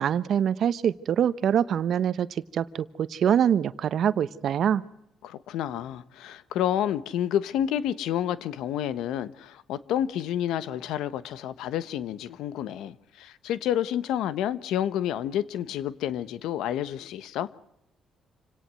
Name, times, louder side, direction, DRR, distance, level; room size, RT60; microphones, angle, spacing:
voice 1, 0.0-4.8, right 9 dB, 65° right, 1.1 m, -24 dB
voice 2, 5.2-17.5, left 10 dB, 90° left, 1.2 m, -29 dB
27.5 x 18.0 x 7.8 m
cardioid pair, 90°, 0 cm